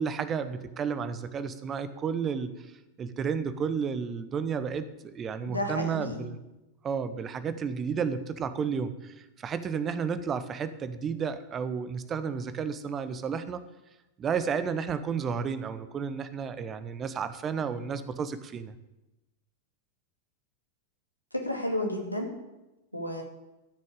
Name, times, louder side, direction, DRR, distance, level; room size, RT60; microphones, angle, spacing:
voice 1, 0.0-2.5 3.0-6.4 6.8-13.6 14.2-18.7, right 6 dB, 25° right, 12 dB, 1.0 m, -32 dB
voice 2, 5.5-6.3 21.3-22.3 22.9-23.2, left 1 dB, 90° left, 2 dB, 2.2 m, -31 dB
13.5 x 6.6 x 8.4 m, 0.99 s
figure-of-eight pair, 90°, 0 cm